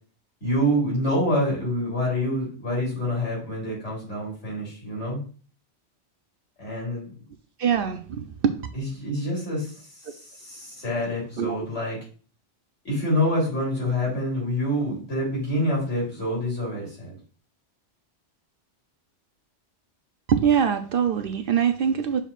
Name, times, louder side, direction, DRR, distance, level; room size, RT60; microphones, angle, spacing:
voice 1, 0.4-5.2 6.6-7.1 8.7-12.0 12.8-17.2, equal, 85° left, -4 dB, 3.8 m, -27 dB
voice 2, 7.6-8.6 11.4-11.6 20.3-22.2, right 8 dB, 60° right, 8 dB, 0.7 m, -23 dB
6.7 x 5.8 x 2.5 m, 0.40 s
omnidirectional pair, 1.2 m